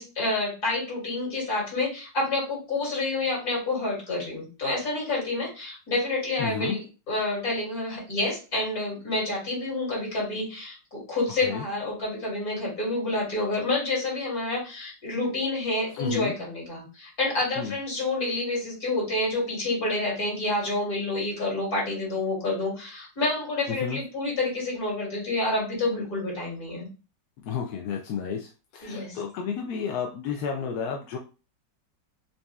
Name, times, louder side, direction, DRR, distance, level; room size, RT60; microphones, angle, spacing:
voice 1, 0.0-26.9 28.8-29.2, left 2 dB, 50° left, -5 dB, 2.9 m, -28 dB
voice 2, 6.4-6.8 11.4-11.6 16.0-16.3 17.6-17.7 23.7-24.0 27.4-31.2, left 7 dB, 70° left, 2 dB, 1.0 m, -31 dB
5.3 x 2.8 x 2.3 m, 0.33 s
omnidirectional pair, 2.0 m